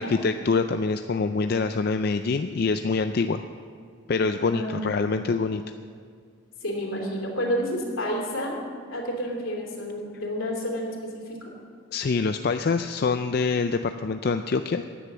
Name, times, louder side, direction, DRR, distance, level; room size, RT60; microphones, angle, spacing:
voice 1, 0.0-3.4 4.1-5.6 11.9-14.8, left 4 dB, 50° left, 8 dB, 0.4 m, -25 dB
voice 2, 4.4-4.9 6.6-8.6 8.9-11.5, equal, 80° left, 0 dB, 3.1 m, -30 dB
15.0 x 10.0 x 6.2 m, 2.2 s
head